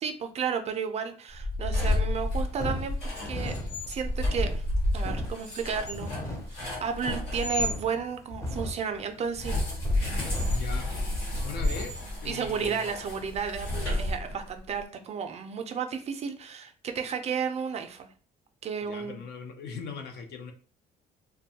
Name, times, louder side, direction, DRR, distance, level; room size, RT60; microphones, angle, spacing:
voice 1, 0.0-3.0 3.3-3.5 3.9-4.6 4.9-6.1 6.5-9.6 12.2-18.1 18.6-19.2, right 6 dB, 40° right, 7 dB, 0.4 m, -32 dB
sound 1, 1.3-7.8 9.3-14.6, left 1 dB, 85° left, 1.2 m, -30 dB
sound 2, 2.1-12.0, left 1 dB, 15° left, 0.5 m, -38 dB
voice 2, 10.5-10.9 11.4-13.0 18.8-20.5, left 5 dB, 70° left, 4 dB, 0.6 m, -40 dB
2.6 x 2.2 x 2.7 m, 0.40 s
cardioid pair, 110°, 17 cm